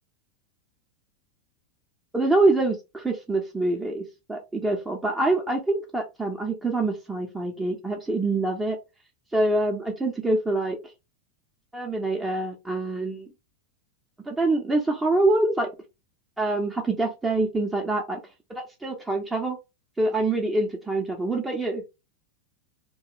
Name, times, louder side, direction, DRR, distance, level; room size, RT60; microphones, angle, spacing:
voice 1, 2.1-8.8 9.3-10.8 11.7-13.3 14.2-15.7 16.4-18.2 18.5-19.6 20.0-21.8, right 2 dB, 10° right, 1 dB, 0.5 m, -25 dB
2.3 x 2.2 x 2.8 m, 0.25 s
figure-of-eight pair, 90°, 0 cm